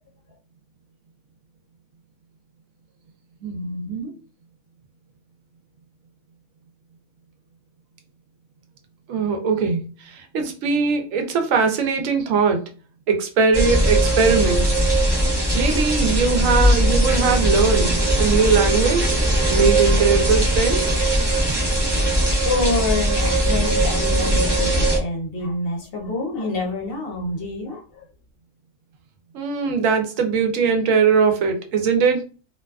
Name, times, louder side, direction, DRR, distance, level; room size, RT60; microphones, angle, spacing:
voice 1, 3.4-4.1 9.1-12.7 13.1-14.7 15.5-19.2 19.5-21.0 29.3-32.3, right 5 dB, 85° right, 1.0 m, -21 dB
sound 1, 13.5-25.0, right 1 dB, 25° right, 0.6 m, -19 dB
voice 2, 22.4-28.1, left 2 dB, 55° left, 0.8 m, -27 dB
2.5 x 2.3 x 2.2 m
omnidirectional pair, 1.3 m